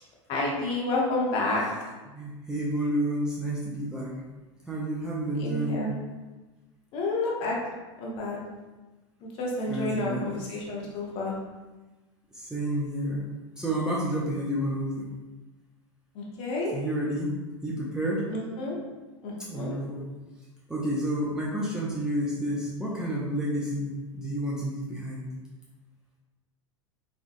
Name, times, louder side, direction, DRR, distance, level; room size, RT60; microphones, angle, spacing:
voice 1, 0.3-1.6 5.3-5.9 6.9-7.6 8.0-8.4 9.2-11.4 16.1-16.7 18.3-18.8 19.2-19.7, left 2 dB, 40° left, -3 dB, 0.9 m, -30 dB
voice 2, 2.1-4.1 4.7-5.9 9.7-10.4 12.3-13.2 13.6-15.1 16.7-17.4 17.6-18.3 19.5-20.0 20.7-25.3, right 1 dB, 5° right, -7 dB, 0.5 m, -30 dB
3.8 x 2.3 x 2.6 m, 1.2 s
figure-of-eight pair, 90°, 16 cm